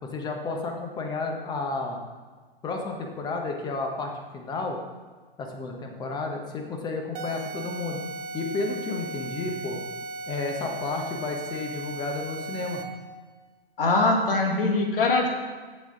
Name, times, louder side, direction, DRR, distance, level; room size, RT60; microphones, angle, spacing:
voice 1, 0.0-2.0 2.6-4.8 5.4-8.0 8.3-9.8 10.3-12.8, left 3 dB, 15° left, 2 dB, 0.8 m, -32 dB
sound 1, 7.1-13.0, right 2 dB, 40° right, 0.8 m, -37 dB
voice 2, 13.8-15.3, left 3 dB, 65° left, 1 dB, 1.6 m, -22 dB
7.3 x 7.2 x 3.7 m, 1.4 s
figure-of-eight pair, 120°, 30 cm